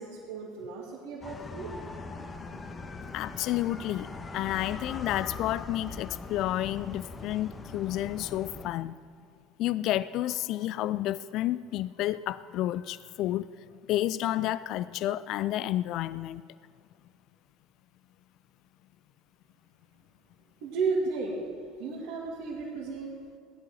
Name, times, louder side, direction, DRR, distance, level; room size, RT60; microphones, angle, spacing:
voice 1, 0.0-1.7 20.6-21.4 21.8-23.2, right 4 dB, 60° right, -6 dB, 2.5 m, -33 dB
sound 1, 1.2-8.7, left 3 dB, 25° left, 1.2 m, -41 dB
voice 2, 3.1-9.0 9.6-13.5 13.9-16.4, left 14 dB, 55° left, 17 dB, 0.3 m, -30 dB
17.0 x 10.5 x 6.3 m, 2.2 s
hypercardioid pair, 70°, 0 cm